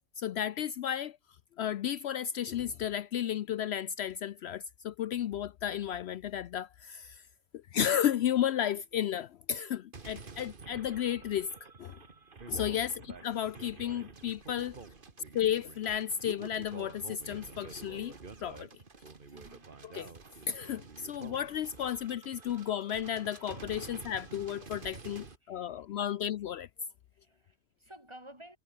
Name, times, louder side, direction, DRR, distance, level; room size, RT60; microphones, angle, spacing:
voice 1, 0.2-1.2 1.6-7.2 7.7-11.5 11.8-12.0 12.5-14.7 15.3-18.1 18.4-18.7 19.9-20.1 20.5-26.7, left 10 dB, 70° left, 0.8 m, -33 dB
sound 1, 9.9-25.4, right 4 dB, 45° right, 1.8 m, -49 dB
voice 2, 19.3-19.7 25.2-26.1 27.1-28.6, right 1 dB, 25° right, 5.7 m, -54 dB
omnidirectional pair, 1.2 m